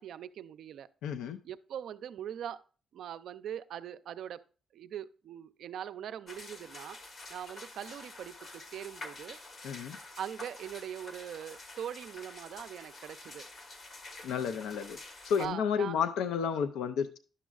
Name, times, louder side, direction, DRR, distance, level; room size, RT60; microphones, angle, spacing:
voice 1, 0.0-0.9 1.4-2.6 2.9-4.4 4.7-7.0 7.3-9.4 10.2-13.5 15.4-16.0, right 9 dB, 70° right, 11 dB, 0.4 m, -41 dB
voice 2, 1.0-1.4 9.6-10.0 14.2-15.0 15.2-17.2, left 7 dB, 85° left, 11 dB, 0.4 m, -31 dB
sound 1, 6.3-15.5, left 2 dB, 45° left, 1.1 m, -48 dB
11.0 x 6.2 x 2.4 m, 0.38 s
cardioid pair, 90°, 0 cm